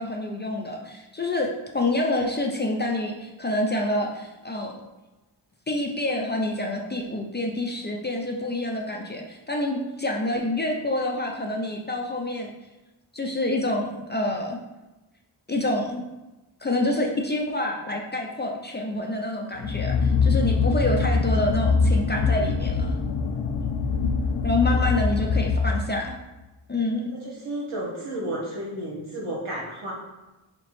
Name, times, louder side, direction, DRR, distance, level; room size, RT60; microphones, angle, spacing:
voice 1, 0.0-4.7 5.7-12.5 13.1-14.6 15.5-16.0 16.6-23.0 24.4-26.2 26.7-27.1, left 1 dB, 20° left, 0 dB, 0.5 m, -27 dB
sound 1, 19.6-26.1, left 4 dB, 75° left, 0.5 m, -23 dB
voice 2, 27.2-29.9, right 1 dB, 80° right, -3 dB, 1.3 m, -32 dB
4.2 x 2.9 x 3.1 m, 1.0 s
cardioid pair, 60°, 49 cm